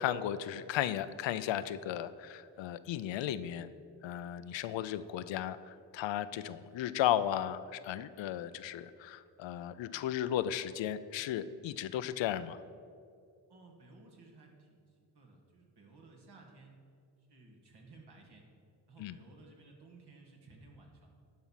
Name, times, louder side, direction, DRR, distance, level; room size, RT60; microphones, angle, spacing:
voice 1, 0.0-3.7 4.0-12.6 19.0-19.2, left 11 dB, 80° left, 14 dB, 0.5 m, -35 dB
voice 2, 13.5-16.8 17.3-18.5 18.9-21.1, right 3 dB, 60° right, 1 dB, 2.0 m, -57 dB
11.5 x 4.8 x 5.7 m, 2.3 s
cardioid pair, 60°, 44 cm